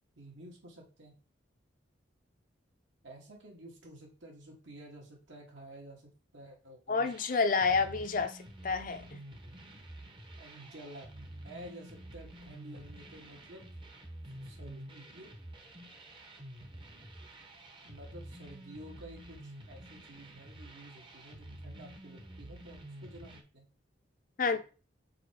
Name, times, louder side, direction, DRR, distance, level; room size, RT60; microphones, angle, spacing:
voice 1, 0.2-1.1 3.0-7.1 7.6-7.8 10.4-11.1 11.4-13.6 14.4-15.3 17.8-23.6 24.4-24.6, right 1 dB, 75° right, 2.2 m, -51 dB
voice 2, 6.9-8.4 8.6-9.0 24.4-24.6, left 4 dB, 45° left, 0.5 m, -28 dB
sound 1, 7.0-23.4, right 1 dB, 25° right, 0.9 m, -49 dB
5.0 x 4.5 x 4.6 m
head